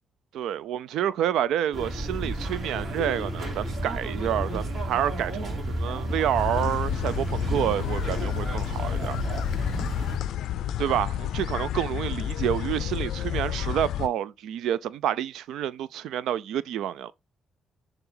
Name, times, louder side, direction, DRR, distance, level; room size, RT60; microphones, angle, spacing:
voice 1, 0.3-9.2 10.8-17.1, right 11 dB, 85° right, 0.4 m, -28 dB
sound 1, 1.7-10.2, right 1 dB, 50° right, 3.0 m, -31 dB
sound 2, 6.3-14.1, left 11 dB, 80° left, 0.4 m, -30 dB
7.0 x 4.0 x 3.8 m
cardioid pair, 90°, 0 cm